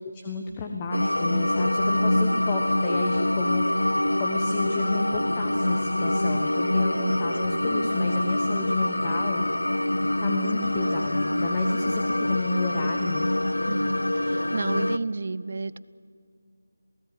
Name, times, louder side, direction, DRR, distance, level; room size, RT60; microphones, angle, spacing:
voice 1, 0.0-9.5 10.2-13.3, left 4 dB, 20° left, 3 dB, 1.4 m, -33 dB
sound 1, 0.9-15.0, left 1 dB, 70° left, 0.8 m, -25 dB
voice 2, 13.6-15.8, right 3 dB, 45° right, 18 dB, 0.7 m, -32 dB
27.5 x 17.5 x 9.7 m, 2.2 s
figure-of-eight pair, 160°, 0 cm